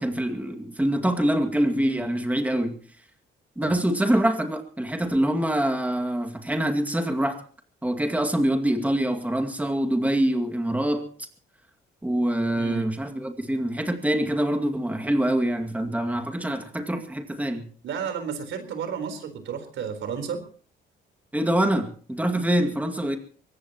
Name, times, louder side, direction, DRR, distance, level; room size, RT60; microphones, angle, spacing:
voice 1, 0.0-2.8 3.6-7.4 7.8-11.3 12.0-17.7 21.3-23.2, right 1 dB, 5° right, 2.2 m, -25 dB
voice 2, 17.8-20.4, right 7 dB, 75° right, 4.1 m, -32 dB
23.5 x 18.5 x 3.0 m
cardioid pair, 90°, 20 cm